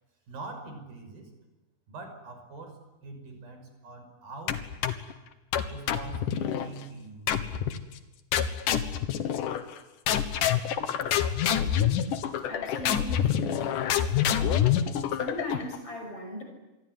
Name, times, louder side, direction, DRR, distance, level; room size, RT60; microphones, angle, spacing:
voice 1, 0.3-1.3 1.9-4.6 5.6-7.7, right 3 dB, 75° right, 6 dB, 7.3 m, -43 dB
sound 1, 4.5-5.1 5.5-6.7 7.3-7.8 8.3-9.8 10.1-15.8, left 9 dB, 65° left, 2.8 m, -27 dB
voice 2, 12.4-14.3 15.0-16.4, left 1 dB, 40° left, 4 dB, 7.5 m, -39 dB
27.0 x 22.0 x 9.5 m, 1.1 s
omnidirectional pair, 4.2 m